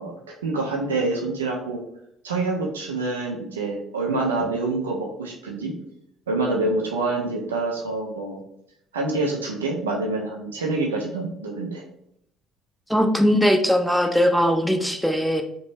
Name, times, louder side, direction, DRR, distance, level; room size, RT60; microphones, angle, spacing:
voice 1, 0.0-1.8 2.2-5.8 6.3-8.4 8.9-11.8, right 3 dB, 80° right, -1 dB, 0.4 m, -26 dB
voice 2, 12.9-15.4, equal, ahead, 4 dB, 0.4 m, -20 dB
2.8 x 2.2 x 3.0 m, 0.75 s
figure-of-eight pair, 50°, 0 cm